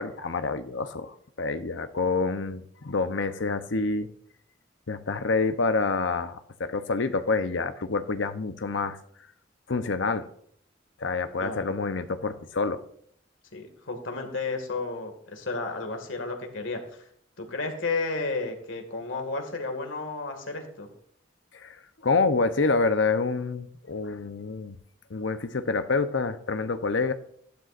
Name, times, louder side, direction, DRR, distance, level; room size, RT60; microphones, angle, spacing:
voice 1, 0.0-4.1 4.9-9.0 9.7-10.3 11.0-12.8 21.5-21.8 22.0-24.8 25.1-27.1, left 4 dB, 75° left, 10 dB, 0.8 m, -27 dB
voice 2, 11.4-11.8 13.5-17.0 17.4-20.9, left 3 dB, 90° left, 5 dB, 2.0 m, -32 dB
15.0 x 12.0 x 2.6 m, 0.65 s
head